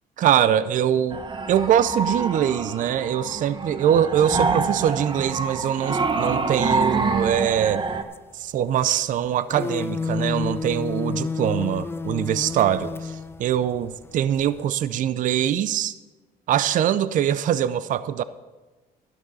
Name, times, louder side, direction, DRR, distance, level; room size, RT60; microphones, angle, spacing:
voice 1, 0.2-1.2 1.5-7.9 8.3-15.9 16.5-18.2, right 10 dB, 50° right, 16 dB, 0.5 m, -23 dB
sound 1, 1.1-8.0, right 4 dB, 30° right, 0.9 m, -26 dB
sound 2, 5.6-5.7 6.1-6.3 6.7-6.8 8.1-8.6 8.9-9.0 9.2-14.7, left 4 dB, 15° left, 0.4 m, -30 dB
12.5 x 12.0 x 4.1 m, 1.2 s
cardioid pair, 110°, 17 cm